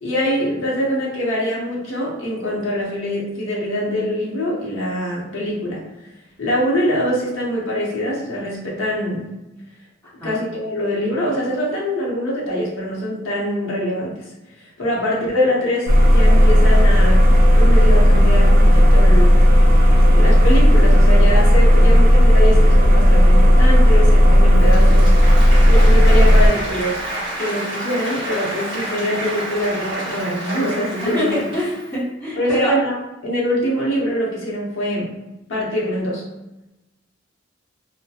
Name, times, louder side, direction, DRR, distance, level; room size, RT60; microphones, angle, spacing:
voice 1, 0.0-5.8 6.4-9.3 10.2-14.3 14.8-17.3 17.5-19.3 20.1-25.1 25.7-27.0 27.4-31.4 32.4-33.0 33.2-35.1 35.5-36.2, equal, 75° left, -5 dB, 0.7 m, -23 dB
sound 1, 15.9-26.5, equal, 45° right, 0.4 m, -11 dB
Applause, 24.5-31.9, right 1 dB, 25° right, 1.1 m, -29 dB
voice 2, 31.0-32.7, left 1 dB, 20° left, -16 dB, 1.2 m, -24 dB
2.3 x 2.1 x 2.7 m, 0.99 s
head